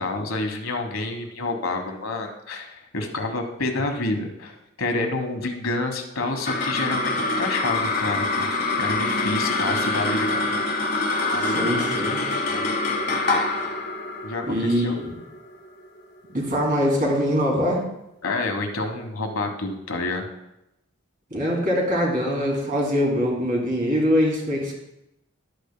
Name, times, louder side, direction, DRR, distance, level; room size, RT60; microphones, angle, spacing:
voice 1, 0.0-8.5 8.8-10.7 11.3-12.0 12.3-12.7 14.2-15.0 18.2-20.3, left 2 dB, 70° left, 5 dB, 1.2 m, -29 dB
sound 1, 6.2-16.8, left 2 dB, 40° left, 1.2 m, -26 dB
voice 2, 11.4-12.2 14.5-15.1 16.3-17.8 21.3-24.7, equal, 40° right, -2 dB, 2.6 m, -23 dB
12.5 x 8.5 x 2.2 m, 0.86 s
head